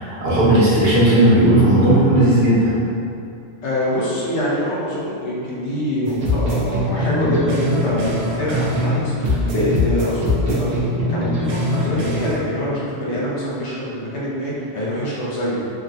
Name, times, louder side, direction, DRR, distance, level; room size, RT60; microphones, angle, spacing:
voice 1, 0.0-2.7, right 1 dB, 60° right, -9 dB, 1.0 m, -15 dB
voice 2, 3.6-15.7, equal, 70° left, -6 dB, 1.0 m, -24 dB
sound 1, 6.0-9.0 9.2-12.4, left 1 dB, 85° right, 1.0 m, -22 dB
3.5 x 2.2 x 2.6 m, 2.6 s
omnidirectional pair, 1.2 m